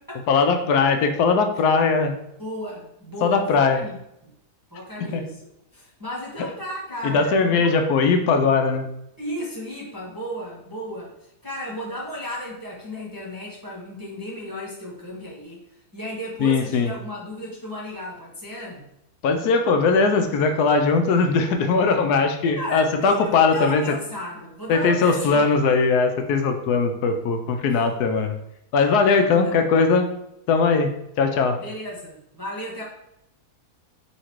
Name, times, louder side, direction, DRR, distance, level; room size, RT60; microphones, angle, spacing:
voice 1, 0.3-2.2 3.2-3.8 5.1-5.2 7.0-8.9 16.4-16.9 19.2-23.8 24.7-28.3 28.7-30.1 30.5-30.9 31.2-31.6, left 4 dB, 85° left, 6 dB, 1.2 m, -20 dB
voice 2, 2.4-4.0 4.2-4.3 4.7-7.8 9.2-11.1 11.4-18.9 22.5-25.5 27.7-27.8 29.1-29.6 31.6-32.8, equal, 15° right, -5 dB, 0.8 m, -34 dB
4.1 x 2.8 x 4.4 m, 0.80 s
omnidirectional pair, 1.7 m